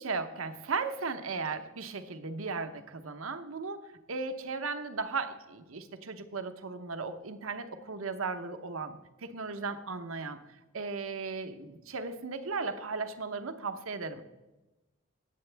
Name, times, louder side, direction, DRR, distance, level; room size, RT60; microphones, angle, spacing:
voice 1, 0.0-3.8 4.1-10.4 10.7-14.2, right 4 dB, 80° right, 9 dB, 0.9 m, -36 dB
19.0 x 8.0 x 3.4 m, 1.1 s
head